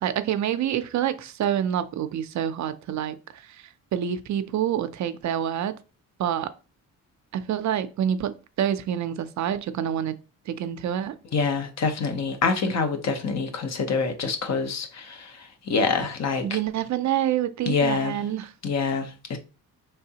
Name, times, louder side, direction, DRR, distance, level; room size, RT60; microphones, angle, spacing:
voice 1, 0.0-5.7 6.2-6.5 7.3-10.2 10.5-11.2 16.4-18.5, right 10 dB, 55° right, 0.5 m, -27 dB
voice 2, 11.3-16.6 17.7-18.2 18.6-19.4, left 4 dB, 50° left, 0.8 m, -26 dB
4.6 x 3.3 x 2.8 m
cardioid pair, 110°, 34 cm